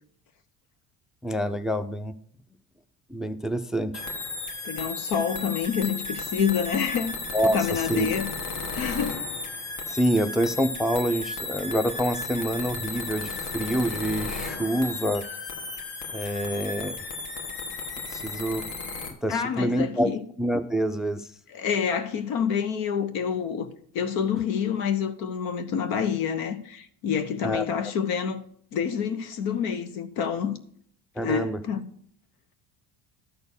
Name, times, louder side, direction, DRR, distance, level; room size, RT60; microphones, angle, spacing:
voice 1, 1.2-2.1 3.1-4.0 7.3-8.1 9.9-15.2 16.1-17.0 18.1-18.6 19.2-20.1 20.4-21.3 27.4-27.7 31.2-31.6, equal, ahead, 0.4 m, -26 dB
sound 1, 3.9-19.1, left 3 dB, 55° left, 1.6 m, -34 dB
voice 2, 4.6-7.2 7.4-8.3 8.7-9.2 19.3-20.2 21.5-23.7 23.9-28.4 28.7-30.6 31.2-31.8, left 7 dB, 80° left, 1.1 m, -27 dB
12.0 x 4.4 x 6.7 m
cardioid pair, 110°, 35 cm